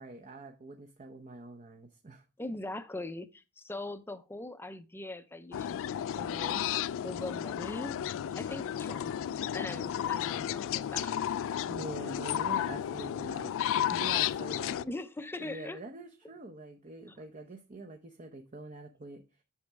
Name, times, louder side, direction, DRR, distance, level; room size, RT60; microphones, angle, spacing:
voice 1, 0.0-2.2 11.7-14.9 15.4-19.2, right 2 dB, 35° right, 0.7 m, -45 dB
voice 2, 2.4-5.8 6.1-6.7 7.0-8.0 8.4-9.2 9.5-11.2 14.8-15.8 17.1-17.2, left 2 dB, 10° left, 0.6 m, -41 dB
sound 1, 5.5-14.8, left 10 dB, 60° left, 0.3 m, -33 dB
8.4 x 6.2 x 3.4 m
head